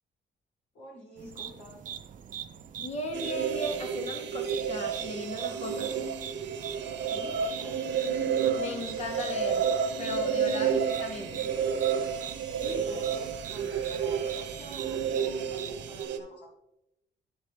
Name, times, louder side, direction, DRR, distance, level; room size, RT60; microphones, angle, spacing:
voice 1, 0.7-1.8 7.1-7.9 12.6-16.5, equal, 90° left, -2 dB, 2.4 m, -48 dB
sound 1, 1.2-16.0, right 8 dB, 45° right, 0.4 m, -43 dB
voice 2, 2.8-6.0 8.5-9.7 10.0-11.5 12.6-12.8, left 1 dB, 40° left, 5 dB, 0.8 m, -36 dB
sound 2, 3.1-16.2, right 7 dB, 80° right, 0.8 m, -31 dB
11.5 x 4.0 x 3.3 m, 0.87 s
cardioid pair, 130°, 18 cm